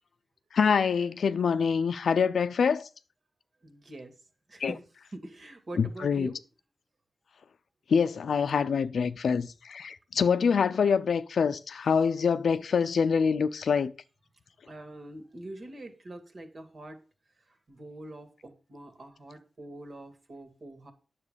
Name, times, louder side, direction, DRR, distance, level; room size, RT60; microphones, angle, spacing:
voice 1, 0.5-2.9 4.6-4.7 5.8-6.3 7.9-13.9, left 6 dB, 90° left, 0.6 m, -25 dB
voice 2, 3.6-4.1 4.5-6.4 14.7-17.0 17.5-20.9, right 1 dB, 50° right, 2.3 m, -44 dB
9.8 x 7.3 x 5.1 m
wide cardioid pair, 105°, 0 cm